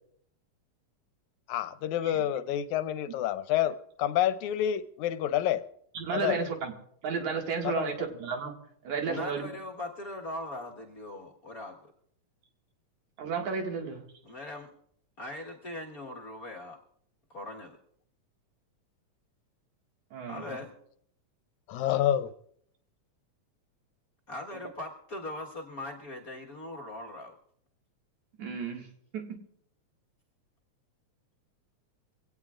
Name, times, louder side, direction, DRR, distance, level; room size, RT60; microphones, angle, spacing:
voice 1, 1.5-5.6 6.1-6.5 7.6-7.9 21.7-22.3, left 11 dB, 80° left, 12 dB, 2.0 m, -28 dB
voice 2, 5.9-6.7 7.0-8.5 8.8-9.5 13.2-14.0 20.1-20.6 28.4-28.9 29.1-29.4, right 5 dB, 75° right, 2 dB, 3.3 m, -33 dB
voice 3, 9.0-11.9 14.2-14.7 15.2-16.8 17.3-17.8 20.3-20.7 24.3-27.4, left 1 dB, 40° left, -1 dB, 1.5 m, -40 dB
24.0 x 17.5 x 2.5 m, 0.66 s
omnidirectional pair, 3.4 m